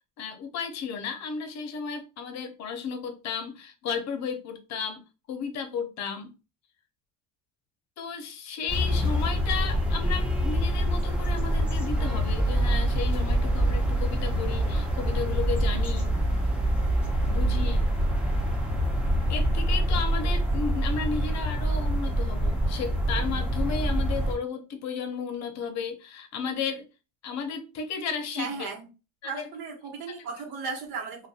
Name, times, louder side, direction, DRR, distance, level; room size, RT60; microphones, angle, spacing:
voice 1, 0.2-5.0 5.3-6.3 8.0-16.1 17.3-17.9 19.3-26.8 27.2-28.7 29.2-29.5 30.1-30.2, left 6 dB, 50° left, 0.6 m, -33 dB
sound 1, 8.7-24.4, right 1 dB, 5° right, 0.5 m, -25 dB
sound 2, 12.0-22.2, left 8 dB, 40° right, 0.7 m, -39 dB
voice 2, 28.3-28.9 29.2-31.3, right 5 dB, 80° right, 1.0 m, -35 dB
2.6 x 2.2 x 2.4 m
cardioid pair, 130°, 36 cm